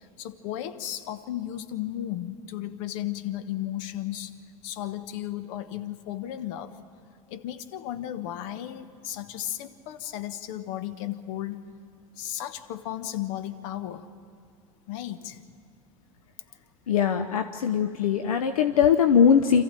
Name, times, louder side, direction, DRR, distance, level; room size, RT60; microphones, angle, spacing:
voice 1, 0.2-4.3 4.6-6.7 7.3-11.6 12.2-14.1 14.9-15.4, left 12 dB, 65° left, 10 dB, 1.2 m, -34 dB
voice 2, 16.9-19.6, left 7 dB, 85° left, 8 dB, 0.8 m, -21 dB
26.5 x 14.5 x 9.0 m, 2.4 s
hypercardioid pair, 85°, 18 cm